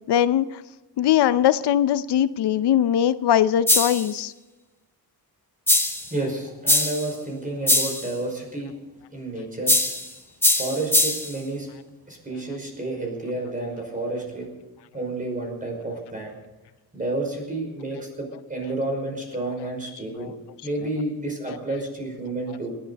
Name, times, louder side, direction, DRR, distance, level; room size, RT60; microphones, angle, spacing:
voice 1, 0.1-0.5 1.0-4.3, left 10 dB, 85° left, 13 dB, 0.7 m, -20 dB
sound 1, 3.7-4.1 5.7-6.1 6.7-7.1 7.7-8.1 9.7-10.1 10.4-11.3, left 1 dB, 5° left, 1.9 m, -21 dB
voice 2, 6.1-8.7 9.1-9.8 10.5-11.7 12.1-14.5 14.9-16.3 16.9-20.3 20.6-22.7, right 2 dB, 20° right, 2 dB, 5.4 m, -30 dB
28.0 x 11.5 x 4.1 m, 1.1 s
wide cardioid pair, 165°, 39 cm